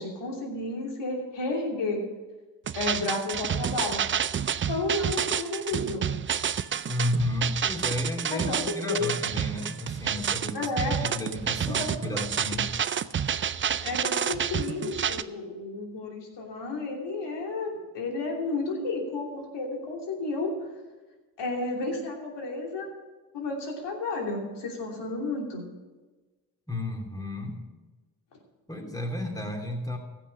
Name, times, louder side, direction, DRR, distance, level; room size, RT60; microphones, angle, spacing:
voice 1, 0.0-2.0 2.7-4.0 4.7-6.1 8.3-9.1 10.5-11.0 11.8-12.2 13.8-20.5 21.4-22.9 23.3-25.6, left 3 dB, 60° left, 0 dB, 3.1 m, -32 dB
sound 1, 2.7-15.2, right 8 dB, 25° right, 0.5 m, -29 dB
voice 2, 6.9-12.7 26.7-27.6 28.7-30.0, left 1 dB, 10° left, 2 dB, 2.8 m, -32 dB
15.0 x 6.3 x 6.5 m, 1.2 s
hypercardioid pair, 50°, 47 cm